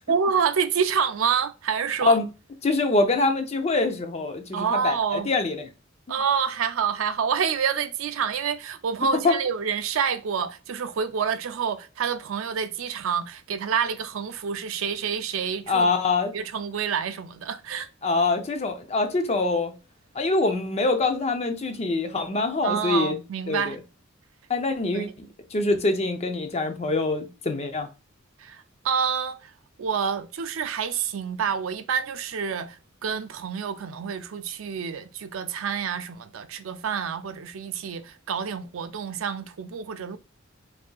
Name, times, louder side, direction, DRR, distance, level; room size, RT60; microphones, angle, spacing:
voice 1, 0.1-2.2 4.5-5.3 6.1-15.9 16.3-17.9 22.6-23.8 24.9-25.1 28.4-29.5 29.8-40.2, right 7 dB, 90° right, 0.4 m, -28 dB
voice 2, 2.6-5.7 9.2-9.4 15.7-16.3 18.0-19.7 20.1-23.2 23.5-23.8 24.5-27.9, left 3 dB, 35° left, 0.6 m, -24 dB
4.8 x 2.7 x 2.3 m
head